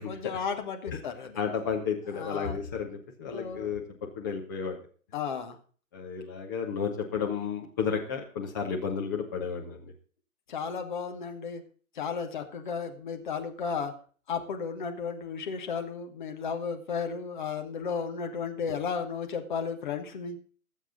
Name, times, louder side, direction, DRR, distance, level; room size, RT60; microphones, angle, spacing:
voice 1, 0.0-1.4 2.1-2.6 3.3-3.7 5.1-5.6 10.5-11.6 11.9-13.9 14.3-20.4, left 6 dB, 35° left, 5 dB, 1.4 m, -34 dB
voice 2, 1.4-3.8 4.2-4.8 5.9-9.9, left 6 dB, 15° left, 0 dB, 0.8 m, -32 dB
19.0 x 7.4 x 3.9 m, 0.42 s
figure-of-eight pair, 130°, 44 cm